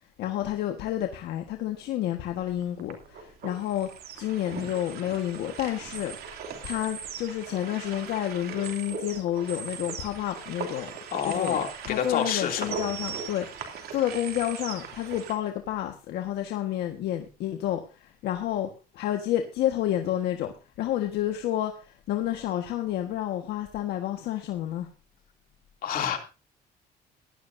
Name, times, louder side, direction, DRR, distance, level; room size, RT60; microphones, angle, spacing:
voice 1, 0.2-3.9 4.2-6.2 6.6-10.9 11.2-24.9, left 12 dB, 75° left, 1.5 m, -30 dB
sound 1, 2.2-15.3, right 6 dB, 65° right, 2.7 m, -39 dB
voice 2, 11.1-12.7 25.8-26.2, left 8 dB, 60° left, 2.7 m, -28 dB
17.0 x 12.0 x 2.6 m
cardioid pair, 110°, 17 cm